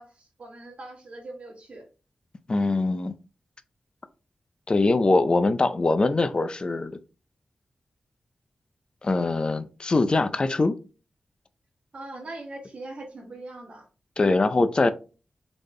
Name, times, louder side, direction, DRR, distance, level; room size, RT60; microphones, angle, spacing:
voice 1, 0.0-1.8 11.9-13.9, right 2 dB, 55° right, 1.5 m, -41 dB
voice 2, 2.5-3.1 4.7-6.9 9.0-10.8 14.2-14.9, left 3 dB, 35° left, 0.5 m, -22 dB
4.0 x 3.5 x 3.2 m
wide cardioid pair, 80°, 2 cm